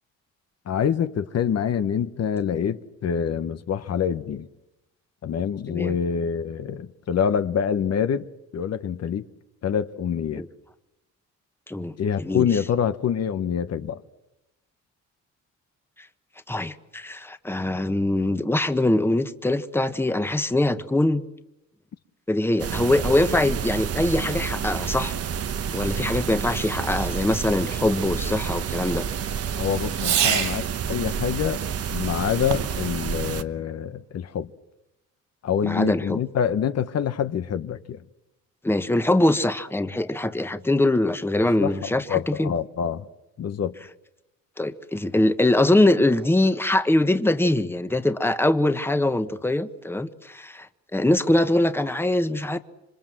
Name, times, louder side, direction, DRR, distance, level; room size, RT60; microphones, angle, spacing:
voice 1, 0.7-4.5 5.2-9.3 9.6-10.4 12.0-14.0 29.6-31.6 31.9-34.5 35.4-38.0 41.6-43.1 43.4-43.8, left 8 dB, 55° left, 1.1 m, -26 dB
voice 2, 11.7-12.5 16.5-21.2 22.3-25.1 25.7-29.0 35.6-36.2 38.6-42.5 44.6-50.7 50.9-52.6, left 1 dB, 10° left, 1.3 m, -23 dB
sound 1, 22.6-33.4, right 7 dB, 50° right, 1.2 m, -29 dB
Fireworks, 23.7-30.8 32.4-32.9, right 8 dB, 85° right, 5.5 m, -32 dB
27.5 x 25.0 x 7.6 m
cardioid pair, 90°, 30 cm